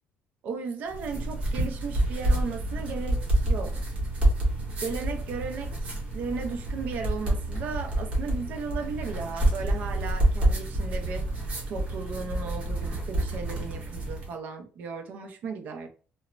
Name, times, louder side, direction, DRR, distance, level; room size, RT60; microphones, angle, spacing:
voice 1, 0.4-3.8 4.8-11.3 11.7-15.9, right 5 dB, 50° right, 0.5 m, -35 dB
sound 1, 0.9-14.3, right 1 dB, 30° right, 0.9 m, -28 dB
3.0 x 2.0 x 2.4 m
cardioid pair, 170°, 4 cm